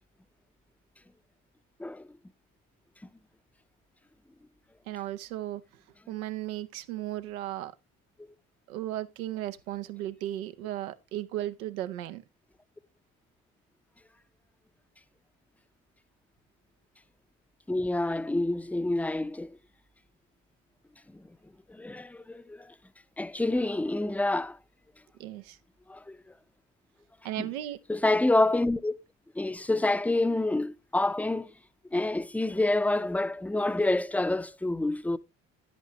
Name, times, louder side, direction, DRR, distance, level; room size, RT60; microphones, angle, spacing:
voice 1, 4.9-5.6 6.1-7.7 8.7-12.2 25.2-25.6 27.2-27.8, right 13 dB, 90° right, 0.7 m, -35 dB
voice 2, 17.7-19.6 21.1-21.2 21.7-22.7 23.2-24.6 25.9-26.2 27.4-27.5 27.9-28.9 29.4-31.5 31.9-35.2, left 2 dB, 5° left, 0.5 m, -27 dB
11.0 x 8.4 x 2.9 m
hypercardioid pair, 50°, 41 cm